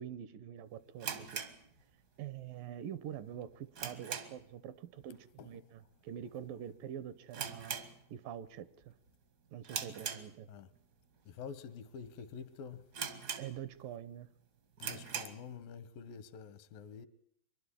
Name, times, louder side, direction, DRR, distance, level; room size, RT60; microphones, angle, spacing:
voice 1, 0.0-1.5 2.2-7.8 8.1-8.9 9.5-10.5 13.4-14.3, right 10 dB, 75° right, 2.6 m, -45 dB
sound 1, 1.0-2.3 2.6-2.7 3.2-4.6 4.9-5.2 5.4-5.5 6.2-6.5 6.8-6.9 7.3-8.5 8.8-9.1 9.6-10.8 11.3-11.4 12.0-12.1 12.4-12.5 12.9-13.9 14.3-14.4 14.7-15.5, right 7 dB, 60° right, 1.0 m, -41 dB
voice 2, 11.3-12.9 14.8-17.1, left 6 dB, 80° left, 2.8 m, -47 dB
24.0 x 12.0 x 9.8 m
omnidirectional pair, 4.1 m